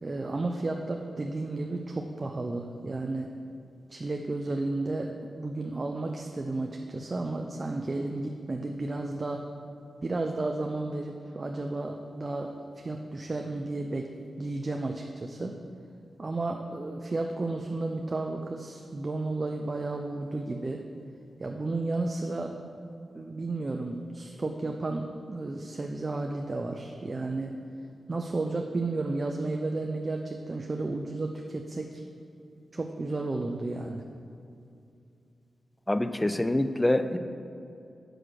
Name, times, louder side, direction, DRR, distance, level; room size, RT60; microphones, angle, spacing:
voice 1, 0.0-3.3 3.9-9.5 10.0-14.1 14.4-15.6 16.2-20.8 21.4-22.6 23.1-27.6 28.1-32.0 32.7-34.0, right 2 dB, 40° right, 3 dB, 0.6 m, -32 dB
voice 2, 35.9-37.2, left 1 dB, 15° left, 10 dB, 0.5 m, -25 dB
7.8 x 6.2 x 6.6 m, 2.6 s
cardioid pair, 60°, 0 cm